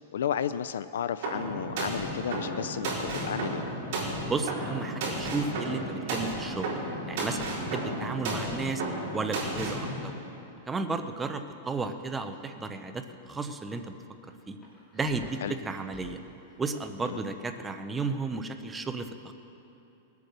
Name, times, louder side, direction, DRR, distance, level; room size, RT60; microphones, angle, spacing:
voice 1, 0.0-3.6 15.4-15.5 17.0-17.2, left 9 dB, 90° left, 12 dB, 0.3 m, -33 dB
sound 1, 1.2-9.9, right 2 dB, 45° right, 4.2 m, -33 dB
voice 2, 4.3-6.7 7.1-8.8 9.1-10.1 10.7-14.0 14.5-14.6 14.9-16.2 16.6-19.3, right 3 dB, 10° right, 7 dB, 0.6 m, -33 dB
sound 2, 11.8-12.6 13.0-13.3 13.8-13.9 14.3-16.1 16.5-16.7, left 1 dB, 10° left, 2.6 m, -50 dB
19.5 x 8.3 x 6.6 m, 3.0 s
supercardioid pair, 170°, 0 cm